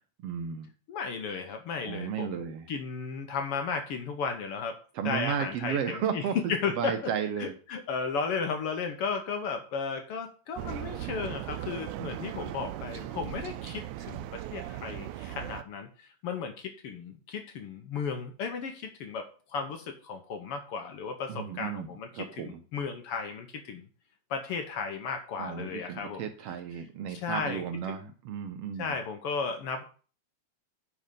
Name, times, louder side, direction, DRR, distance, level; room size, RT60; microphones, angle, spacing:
voice 1, 0.2-0.7 1.9-2.7 4.9-6.4 6.8-7.5 21.3-21.9 22.1-22.6 25.4-28.9, right 8 dB, 70° right, 7 dB, 1.5 m, -33 dB
voice 2, 0.9-2.4 2.7-4.8 5.0-7.1 7.4-23.9 24.3-26.3 27.1-27.6 28.0-28.1 28.8-29.8, left 5 dB, 65° left, 5 dB, 1.5 m, -34 dB
sound 1, 10.6-15.6, right 13 dB, 85° right, 2.0 m, -38 dB
9.5 x 4.3 x 5.2 m, 0.39 s
omnidirectional pair, 3.3 m